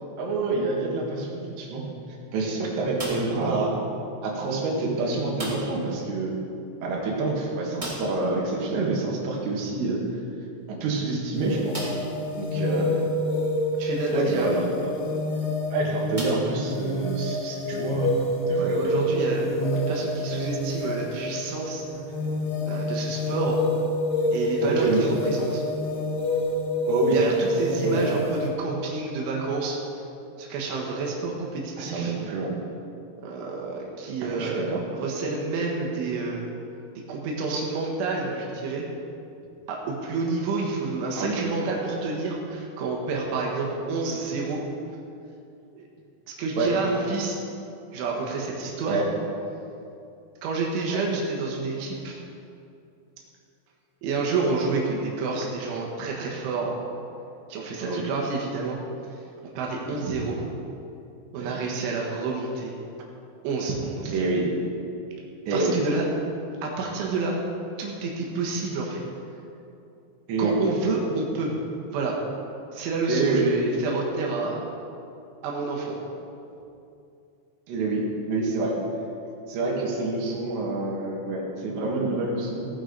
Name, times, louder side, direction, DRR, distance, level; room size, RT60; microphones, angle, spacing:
voice 1, 0.2-1.8 2.3-3.8 4.2-6.4 6.8-10.0 10.7-11.9 12.4-13.0 14.1-14.9 15.7-18.1 18.5-19.1 24.6-25.1 26.9-27.2 27.8-28.0 31.8-32.5 34.2-34.8 41.2-41.4 46.6-46.7 48.9-49.0 50.9-51.0 57.8-58.0 59.9-60.0 61.4-61.5 64.1-64.5 65.5-65.8 70.3-70.5 73.1-73.4 77.7-78.8 79.5-82.7, right 3 dB, 70° right, -3 dB, 4.0 m, -27 dB
sound 1, 2.9-3.5 5.3-5.9 6.2-6.3 6.6-6.7 7.7-8.3 10.1-10.2 10.8-10.9 11.7-12.2 12.9-13.0 15.0-15.2 16.1-17.0, right 1 dB, 15° right, 1.9 m, -36 dB
sound 2, 11.3-28.5, left 1 dB, 70° left, 3.2 m, -27 dB
voice 2, 13.8-14.6 18.5-21.9 22.6-23.6 24.3-25.6 27.1-29.8 30.4-32.2 33.2-34.7 34.9-36.4 37.1-38.9 39.7-44.6 45.7-45.8 46.4-47.4 47.9-49.0 50.4-52.2 54.0-56.8 57.5-58.8 59.6-60.4 61.3-62.7 63.4-64.2 65.5-66.1 66.6-67.4 67.8-69.0 70.4-71.5 71.9-72.2 72.7-74.6 75.4-76.0, right 3 dB, 90° right, -2 dB, 3.8 m, -29 dB
17.5 x 9.7 x 3.9 m, 2.6 s
omnidirectional pair, 5.3 m